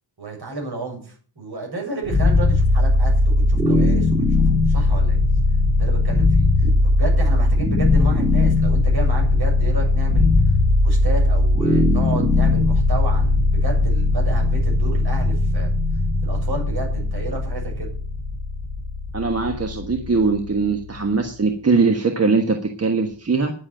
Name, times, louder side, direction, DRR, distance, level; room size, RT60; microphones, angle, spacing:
voice 1, 0.2-5.2 5.8-10.3 10.8-15.7 16.2-17.9, right 3 dB, 55° right, -1 dB, 7.6 m, -32 dB
sound 1, 2.1-21.1, left 2 dB, 10° right, 2.4 m, -19 dB
voice 2, 19.1-23.5, right 4 dB, 35° right, 4 dB, 1.4 m, -21 dB
10.5 x 7.7 x 8.9 m, 0.43 s
wide cardioid pair, 155°, 45 cm